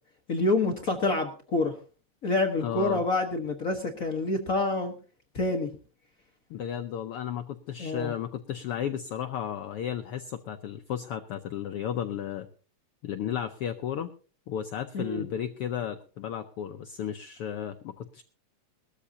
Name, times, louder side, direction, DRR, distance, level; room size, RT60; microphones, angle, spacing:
voice 1, 0.3-1.7 2.2-4.9 5.3-5.7 7.8-8.1 14.9-15.2, left 2 dB, 65° left, 3 dB, 0.8 m, -27 dB
voice 2, 2.6-3.0 6.5-12.5 13.0-14.1 14.5-18.2, left 9 dB, 85° left, 8 dB, 1.2 m, -34 dB
20.5 x 13.5 x 2.8 m, 0.38 s
omnidirectional pair, 3.5 m